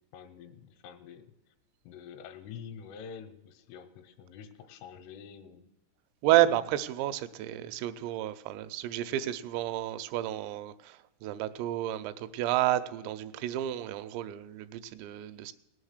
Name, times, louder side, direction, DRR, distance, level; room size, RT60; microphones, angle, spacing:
voice 1, 0.1-1.3 1.8-5.7, left 7 dB, 80° left, 8 dB, 3.1 m, -47 dB
voice 2, 6.2-15.5, right 13 dB, 85° right, 11 dB, 3.3 m, -30 dB
18.5 x 7.2 x 6.5 m, 0.94 s
omnidirectional pair, 6.0 m